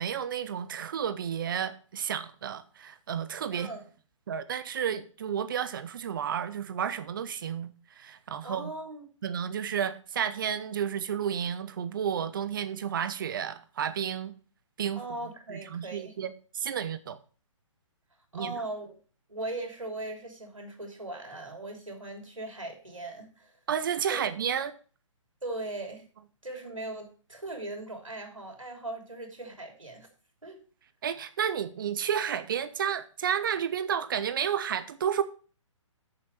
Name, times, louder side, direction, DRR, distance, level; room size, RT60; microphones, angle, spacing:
voice 1, 0.0-3.7 4.3-8.7 9.2-14.3 14.8-15.0 15.5-17.2 18.3-18.6 23.7-24.7 31.0-35.2, right 8 dB, 40° right, 0.9 m, -31 dB
voice 2, 3.5-3.8 8.4-9.0 15.0-16.1 18.3-18.9 19.3-23.6 24.1-24.2 25.4-26.0 26.4-30.1 30.4-30.6, right 2 dB, 80° right, 3.1 m, -39 dB
8.6 x 6.9 x 4.6 m
figure-of-eight pair, 130°, 17 cm